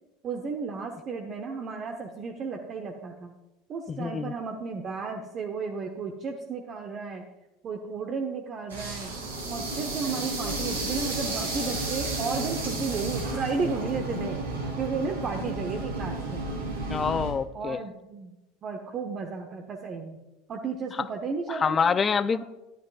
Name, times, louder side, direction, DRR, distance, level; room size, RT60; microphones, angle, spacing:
voice 1, 0.2-3.3 3.7-7.2 7.6-9.1 9.5-14.4 14.8-16.5 17.5-20.2 20.5-22.0 22.3-22.4, right 5 dB, 35° right, 3 dB, 1.0 m, -33 dB
voice 2, 3.9-4.3 16.9-17.8 21.5-22.4, left 6 dB, 25° left, 16 dB, 0.5 m, -26 dB
sound 1, 8.7-17.3, right 2 dB, 80° right, 3.3 m, -32 dB
13.0 x 12.0 x 2.5 m, 0.99 s
figure-of-eight pair, 75°, 0 cm